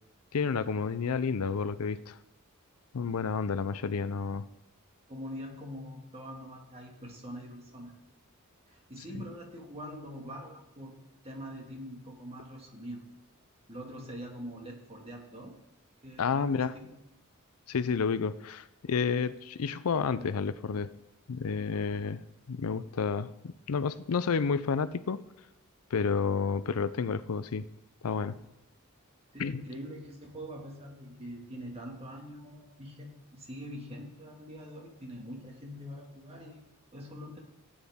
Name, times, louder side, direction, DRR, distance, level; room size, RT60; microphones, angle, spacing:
voice 1, 0.3-2.2 2.9-4.5 16.2-16.8 17.7-20.9 21.3-25.2 25.9-27.7 28.0-28.4 29.4-29.6, left 5 dB, 85° left, 15 dB, 0.5 m, -30 dB
voice 2, 5.1-7.9 8.7-10.9 11.2-13.0 13.7-15.5 16.0-16.9 29.3-37.4, equal, 30° right, 1 dB, 2.0 m, -44 dB
17.0 x 8.8 x 3.6 m, 0.89 s
head